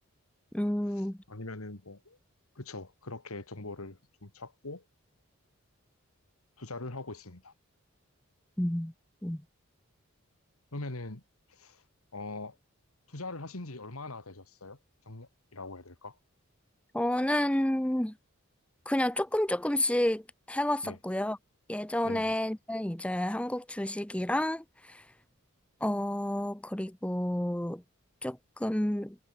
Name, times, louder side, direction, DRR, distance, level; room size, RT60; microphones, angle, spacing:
voice 1, 0.5-1.2 8.6-8.9 9.2-9.4 16.9-18.1 18.9-20.2 20.5-21.4 21.7-25.0 25.8-27.8 28.2-29.2, left 1 dB, 5° left, 0.5 m, -30 dB
voice 2, 1.3-2.2 2.6-4.8 6.6-7.5 10.7-11.2 11.5-11.8 12.1-12.6 13.1-14.8 15.1-16.2 20.8-21.0 22.0-22.3, left 2 dB, 85° left, 2.4 m, -42 dB
head